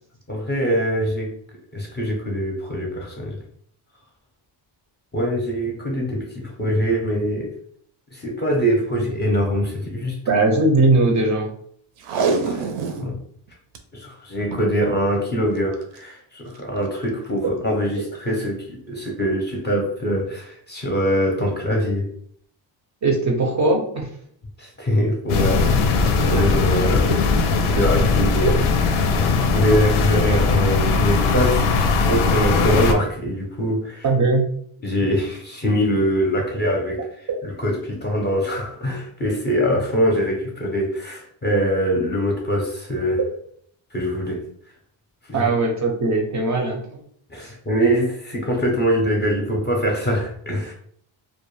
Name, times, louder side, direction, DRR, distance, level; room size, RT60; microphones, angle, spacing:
voice 1, 0.3-1.3 1.7-3.4 5.1-7.5 8.1-10.2 12.4-12.6 13.0-13.1 13.9-22.0 24.6-27.1 27.6-28.5 29.0-31.7 32.0-34.0 34.8-37.0 37.4-43.2 43.9-44.4 45.3-45.5 47.3-50.7, equal, 25° left, -1 dB, 0.5 m, -23 dB
voice 2, 10.3-11.5 17.4-17.5 23.0-24.1 27.1-27.2 34.0-34.5 37.3-37.4 45.3-47.0 47.4-47.5, right 2 dB, 40° right, 1 dB, 0.4 m, -20 dB
Packing tape duct tape, 12.0-13.1 13.5-13.8 14.4-14.7 15.7-16.0 16.6-16.7, right 4 dB, 85° right, 0.6 m, -25 dB
sound 1, 25.3-32.9, left 4 dB, 85° left, 0.5 m, -19 dB
2.3 x 2.1 x 3.0 m, 0.63 s
cardioid pair, 130°, 48 cm